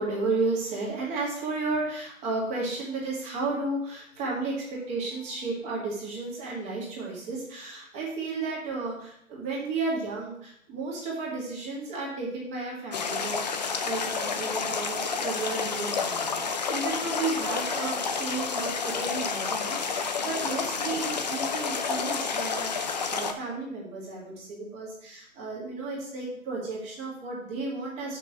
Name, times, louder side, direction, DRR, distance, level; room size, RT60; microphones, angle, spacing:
voice 1, 0.0-28.2, right 3 dB, 15° right, -3 dB, 1.9 m, -33 dB
sound 1, 12.9-23.3, left 5 dB, 30° left, 0.5 m, -30 dB
6.1 x 5.8 x 5.8 m, 0.70 s
figure-of-eight pair, 140°, 41 cm